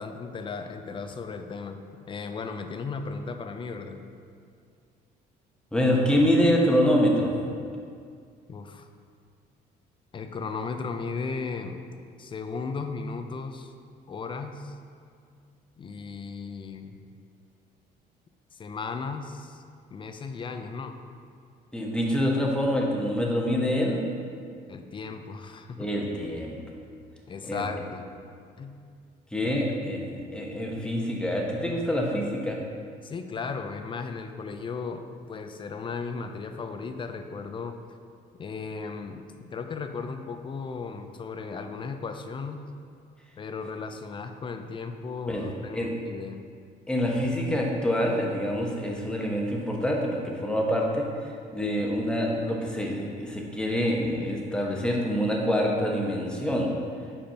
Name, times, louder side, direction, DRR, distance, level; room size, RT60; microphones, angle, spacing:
voice 1, 0.0-1.8 2.1-4.0 8.5-8.9 10.1-11.8 12.2-13.7 14.1-14.8 15.8-17.0 18.5-19.6 19.9-21.0 24.7-25.9 26.2-26.3 27.3-28.1 28.6-28.8 29.4-29.5 33.0-37.8 38.4-39.2 39.5-42.6 43.4-46.4, left 4 dB, 30° left, 7 dB, 0.5 m, -36 dB
voice 2, 5.7-7.3 21.7-24.0 25.8-26.6 27.4-27.7 29.3-32.6 45.3-45.5 45.7-45.9 46.9-51.1 51.5-56.7, equal, 5° left, -1 dB, 1.0 m, -26 dB
5.3 x 4.3 x 5.6 m, 2.2 s
cardioid pair, 110°, 17 cm